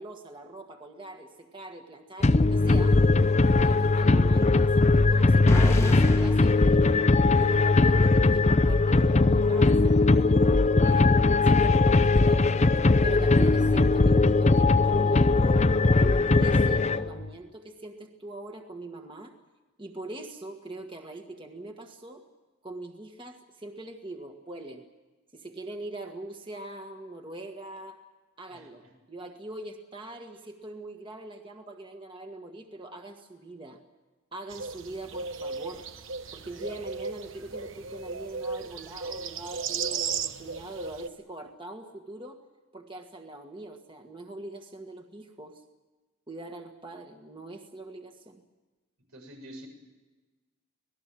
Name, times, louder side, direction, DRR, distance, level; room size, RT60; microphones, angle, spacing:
voice 1, 0.0-3.0 3.5-11.1 11.4-12.5 13.0-19.3 19.8-22.2 22.6-24.9 25.3-28.0 28.4-33.8 34.3-35.9 36.3-42.4 42.7-45.6 46.3-48.4, right 2 dB, 25° right, 3 dB, 1.7 m, -42 dB
sound 1, 2.2-17.3, left 3 dB, 30° left, 0.6 m, -20 dB
sound 2, 5.5-7.6, left 1 dB, 15° left, 1.2 m, -30 dB
voice 2, 28.5-28.9 49.1-49.7, right 1 dB, 90° right, 4 dB, 7.0 m, -47 dB
sound 3, 34.5-41.1, right 5 dB, 60° right, 1.2 m, -35 dB
26.5 x 19.0 x 7.6 m, 1.2 s
head